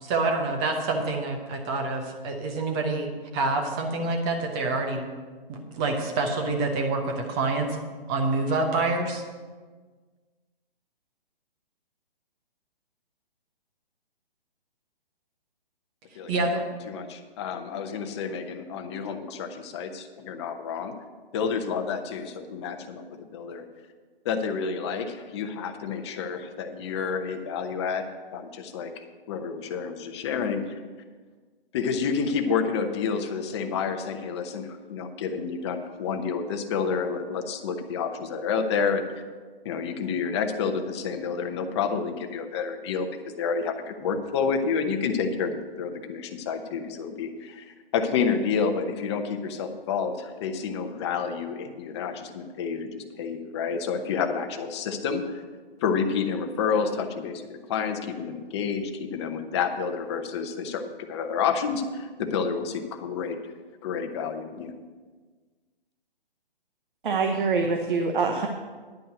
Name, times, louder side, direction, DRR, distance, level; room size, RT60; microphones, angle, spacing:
voice 1, 0.0-3.1 3.3-5.1 5.5-7.8 8.1-9.2 16.3-16.6, right 3 dB, 10° right, 3 dB, 0.4 m, -27 dB
voice 2, 16.9-20.9 21.3-23.6 24.2-28.0 28.3-28.9 29.3-30.8 31.7-39.0 39.6-55.4 55.8-63.4 63.8-64.7, left 6 dB, 30° left, 7 dB, 0.8 m, -29 dB
voice 3, 67.0-68.5, right 4 dB, 55° right, 4 dB, 1.0 m, -24 dB
10.5 x 5.4 x 7.7 m, 1.4 s
figure-of-eight pair, 140°, 30 cm